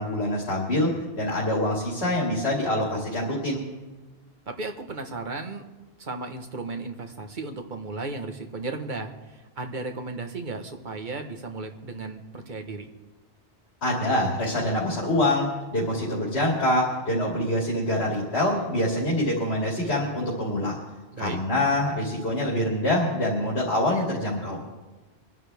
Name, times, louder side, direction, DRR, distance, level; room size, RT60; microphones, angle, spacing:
voice 1, 0.0-3.7 13.8-20.8 21.2-24.6, left 1 dB, 90° left, -5 dB, 2.7 m, -25 dB
voice 2, 4.5-5.7 6.0-12.9 21.1-21.4, right 3 dB, 50° right, 5 dB, 1.4 m, -35 dB
24.0 x 11.0 x 3.5 m, 1.2 s
omnidirectional pair, 1.1 m